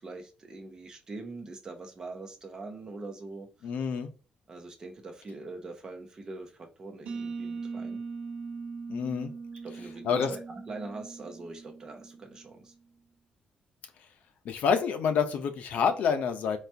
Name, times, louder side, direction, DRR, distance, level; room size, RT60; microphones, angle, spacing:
voice 1, 0.0-3.5 4.5-8.0 9.6-12.7, right 3 dB, 25° right, 4 dB, 0.8 m, -43 dB
voice 2, 3.6-4.1 8.9-9.3 10.0-10.3 14.4-16.6, left 6 dB, 70° left, 7 dB, 0.7 m, -27 dB
sound 1, 7.1-12.6, right 4 dB, 70° right, 1.0 m, -40 dB
4.2 x 2.5 x 3.3 m, 0.35 s
cardioid pair, 170°, 3 cm